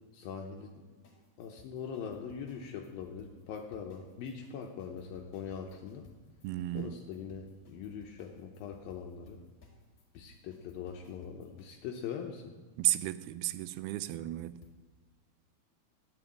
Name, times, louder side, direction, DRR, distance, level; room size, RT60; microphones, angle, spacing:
voice 1, 0.1-0.8 1.4-6.1 6.7-9.4 10.1-12.4, left 7 dB, 75° left, 2.5 m, -42 dB
sound 1, 1.0-11.7 14.6-14.8, left 5 dB, 45° left, 2.8 m, -60 dB
voice 2, 6.4-6.9 12.8-14.6, right 15 dB, 85° right, 2.5 m, -33 dB
11.5 x 9.6 x 8.6 m
omnidirectional pair, 4.4 m